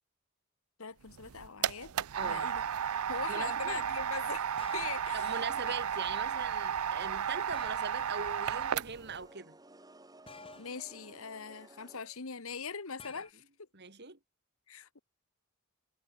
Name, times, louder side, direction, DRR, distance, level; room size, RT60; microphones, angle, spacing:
voice 1, 0.8-1.9 2.3-2.6 3.1-5.4 10.6-13.4 14.7-15.0, left 5 dB, 70° left, 1.3 m, -41 dB
sound 1, 1.1-9.2, right 8 dB, 80° right, 0.5 m, -34 dB
sound 2, 2.2-2.5 4.6-5.3 7.5-8.1 10.3-10.9 13.0-13.3, left 4 dB, 25° left, 5.3 m, -51 dB
voice 2, 2.2-2.5 3.3-3.8 5.1-9.6 13.7-14.2, right 4 dB, 50° right, 2.6 m, -41 dB
sound 3, 8.9-12.4, right 2 dB, 15° right, 2.9 m, -56 dB
head